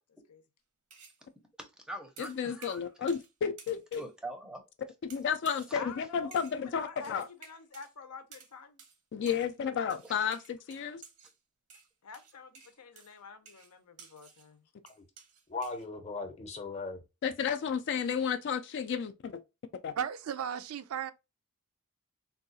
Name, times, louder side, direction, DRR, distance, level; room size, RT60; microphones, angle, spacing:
sound 1, 0.9-1.2 2.2-3.3 3.6-4.1 5.1-5.7 6.3-6.6 7.0-7.9 8.3-8.5 8.8-9.0 9.3-9.5 9.9-11.4 11.7-14.5 14.9-15.9, right 6 dB, 90° right, 0.9 m, -54 dB
voice 1, 1.6-2.9 3.9-4.6 5.7-5.9 9.2-9.3, right 1 dB, 5° right, 0.5 m, -43 dB
voice 2, 2.2-4.0 5.0-7.3 9.1-11.0 17.2-19.4 19.8-19.9, left 7 dB, 55° left, 0.3 m, -32 dB
voice 3, 5.7-8.8 12.0-14.6, left 5 dB, 85° left, 0.7 m, -48 dB
voice 4, 15.5-17.0, left 3 dB, 30° left, 0.7 m, -37 dB
voice 5, 20.0-21.1, right 8 dB, 65° right, 0.4 m, -35 dB
3.8 x 2.3 x 2.6 m
head